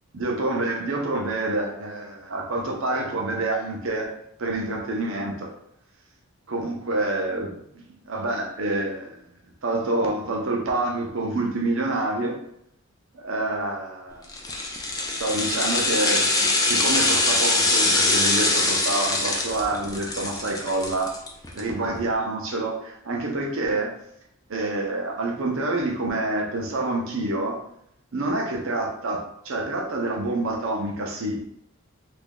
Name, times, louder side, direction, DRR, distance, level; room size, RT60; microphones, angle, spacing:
voice 1, 0.1-4.1 4.4-5.5 6.5-9.2 9.6-12.4 13.1-14.3 15.2-21.2 21.5-24.0 24.5-27.6 28.1-31.4, right 2 dB, 65° right, 1 dB, 0.6 m, -27 dB
sound 1, 14.3-21.6 21.9-22.0, left 2 dB, 15° left, 0.4 m, -23 dB
3.0 x 2.6 x 3.6 m, 0.73 s
head